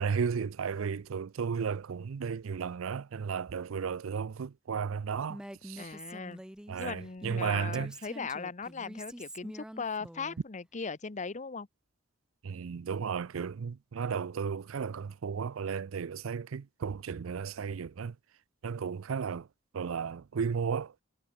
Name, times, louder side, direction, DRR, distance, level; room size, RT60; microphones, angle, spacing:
voice 1, 0.0-5.9 6.7-7.9 12.4-18.2 18.6-19.5 19.7-20.9, right 6 dB, 85° right, 0.5 m, -34 dB
Female speech woman speaking, 5.3-10.4, right 1 dB, 5° right, 0.5 m, -46 dB
voice 2, 5.8-6.4 6.8-11.7, left 5 dB, 35° left, 0.8 m, -38 dB
head